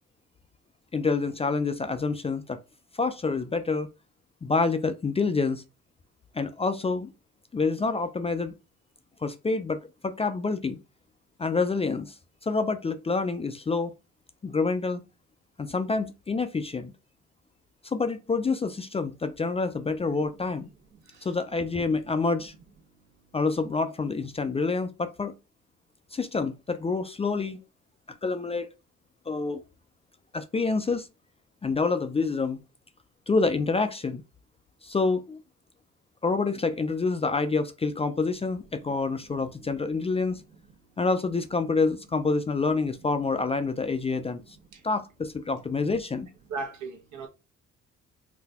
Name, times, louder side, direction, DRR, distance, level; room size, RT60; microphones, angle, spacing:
voice 1, 0.9-2.6 3.0-3.9 4.4-5.6 6.3-7.1 7.5-8.5 9.2-10.8 11.4-12.1 12.4-13.9 14.4-15.0 15.6-16.9 17.8-20.7 21.2-22.5 23.3-25.3 26.1-27.6 28.1-28.7 29.3-29.6 30.3-31.1 31.6-32.6 33.3-34.2 34.8-35.4 36.2-40.4 41.0-44.4 44.8-46.3, left 4 dB, 20° left, 0.3 m, -27 dB
voice 2, 46.5-47.3, right 3 dB, 75° right, 1.0 m, -36 dB
3.9 x 2.2 x 2.7 m
cardioid pair, 90°, 30 cm